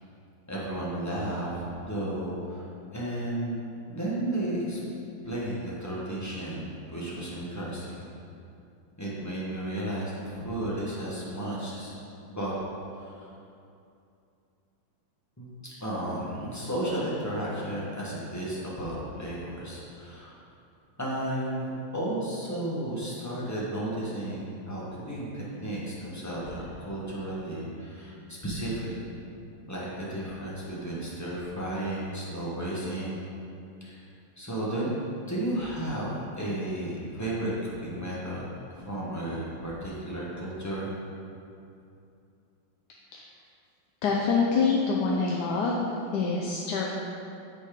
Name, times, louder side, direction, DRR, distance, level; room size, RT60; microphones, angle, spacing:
voice 1, 0.5-2.6 2.9-3.6 3.9-4.8 5.2-8.1 9.0-11.9 12.3-12.5 12.9-13.3 15.4-20.4 21.0-29.0 29.7-33.1 33.8-34.0 34.4-38.4 38.7-40.9, right 1 dB, 10° left, -7 dB, 1.2 m, -33 dB
voice 2, 44.0-45.8 46.1-46.9, left 4 dB, 70° left, -2 dB, 1.1 m, -25 dB
8.2 x 4.3 x 5.0 m, 2.6 s
omnidirectional pair, 2.1 m